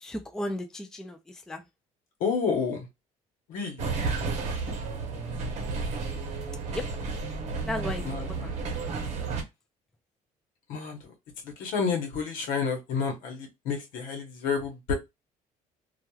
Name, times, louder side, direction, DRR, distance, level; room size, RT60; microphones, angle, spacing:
voice 1, 0.0-1.2 1.5-1.6 6.7-6.8 7.7-8.5, left 1 dB, 5° left, 0.3 m, -34 dB
voice 2, 2.2-2.9 3.5-4.0 4.9-5.0 8.0-8.5 10.7-11.1 11.4-14.9, left 5 dB, 75° left, 1.0 m, -30 dB
sound 1, 3.8-9.4, right 4 dB, 55° right, 0.8 m, -32 dB
3.0 x 2.3 x 2.3 m
cardioid pair, 140°, 14 cm